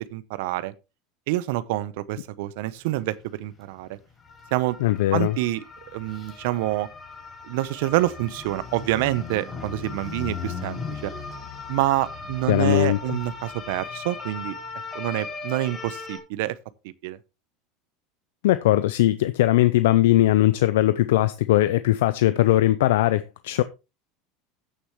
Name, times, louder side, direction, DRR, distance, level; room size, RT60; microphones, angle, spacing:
voice 1, 0.1-0.7 1.3-4.0 4.5-4.8 5.1-5.6 5.9-6.9 7.4-11.1 11.7-14.6 14.9-16.6 16.8-17.2, right 16 dB, 75° right, 0.8 m, -27 dB
sound 1, 3.1-3.2 3.5-3.6 4.1-16.2, left 5 dB, 20° left, 4.7 m, -38 dB
voice 2, 4.8-5.4 12.5-13.2 18.4-23.6, left 15 dB, 85° left, 0.5 m, -20 dB
15.0 x 6.4 x 3.1 m
supercardioid pair, 115°, 0 cm